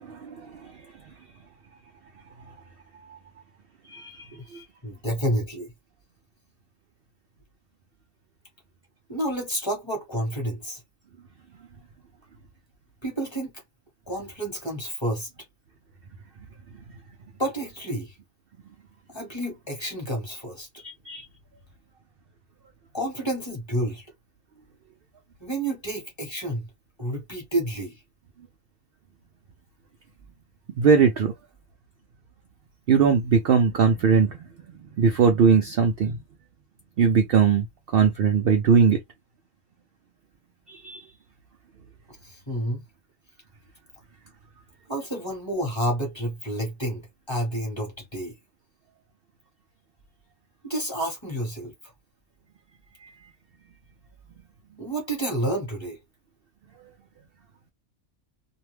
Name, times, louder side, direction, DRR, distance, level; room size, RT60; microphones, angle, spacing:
voice 1, 0.0-0.3 0.6-0.7 3.1-3.2 3.9-4.6 20.8-21.2 30.8-31.3 32.9-34.4 35.0-36.2 37.0-37.7 37.9-39.0 40.7-41.0 53.0-53.1, right 6 dB, 70° right, 0.5 m, -20 dB
voice 2, 4.8-5.7 9.1-10.8 13.0-13.5 14.1-15.3 17.4-18.2 19.1-20.7 22.9-24.1 25.4-26.6 27.0-28.0 42.2-42.8 44.9-48.3 50.6-51.7 54.8-56.0, right 1 dB, 20° left, 1.2 m, -29 dB
2.6 x 2.2 x 3.1 m
omnidirectional pair, 1.5 m